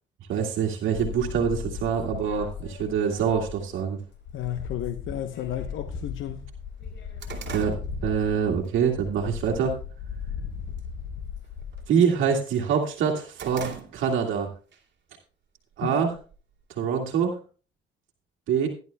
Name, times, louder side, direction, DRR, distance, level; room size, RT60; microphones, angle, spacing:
voice 1, 0.3-4.0 7.5-7.8 8.0-9.8 11.9-14.5 15.8-16.1 16.8-17.4 18.5-18.7, right 7 dB, 80° right, 2.0 m, -25 dB
sound 1, 0.9-3.8 4.1-11.8, left 6 dB, 65° left, 4.3 m, -37 dB
voice 2, 4.3-6.4 15.8-16.0, left 11 dB, 80° left, 0.9 m, -32 dB
sound 2, 4.3-4.4 5.3-5.4 5.9-6.0 6.3-8.7 9.1-9.4 9.9-10.4 10.7-11.0 11.3-12.5 12.9-14.4 14.7-14.8 15.7-16.6, right 6 dB, 60° right, 2.5 m, -41 dB
17.0 x 11.0 x 2.2 m
cardioid pair, 90°, 20 cm